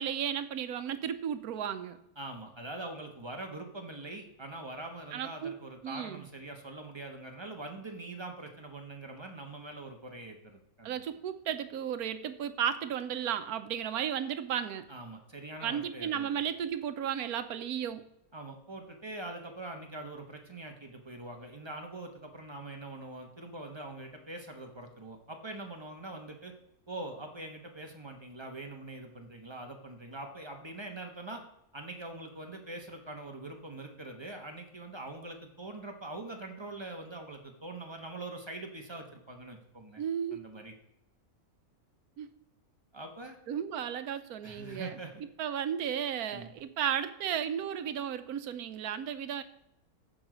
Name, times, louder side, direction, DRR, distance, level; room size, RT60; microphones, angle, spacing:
voice 1, 0.0-2.0 5.1-5.5 5.8-6.3 10.8-14.9 15.6-18.0 40.0-40.4 42.2-42.3 43.5-44.9 45.4-49.4, right 9 dB, 80° right, 11 dB, 1.2 m, -34 dB
voice 2, 2.2-11.0 14.9-16.3 18.3-26.5 26.9-31.4 31.7-40.0 40.3-40.7 42.9-43.4 44.4-45.2 46.3-46.5, right 2 dB, 20° right, 3 dB, 1.1 m, -43 dB
14.5 x 4.8 x 5.0 m, 0.82 s
omnidirectional pair, 1.6 m